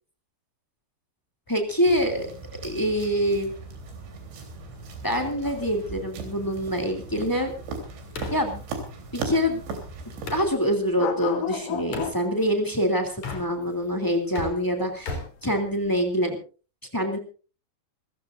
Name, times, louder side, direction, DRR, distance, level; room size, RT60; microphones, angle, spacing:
sound 1, 1.5-16.0, left 8 dB, 85° left, 4.1 m, -37 dB
voice 1, 1.5-2.3 2.6-3.5 5.0-7.5 8.3-8.6 9.1-9.6 10.3-16.4 16.9-17.2, equal, 10° left, 4 dB, 1.2 m, -25 dB
sound 2, 1.8-10.5, right 3 dB, 70° right, 5.6 m, -38 dB
sound 3, 5.2-10.5 11.9-12.2 13.1-13.9 14.2-16.1, left 3 dB, 40° left, 4.4 m, -39 dB
28.0 x 15.0 x 2.6 m, 0.36 s
omnidirectional pair, 5.5 m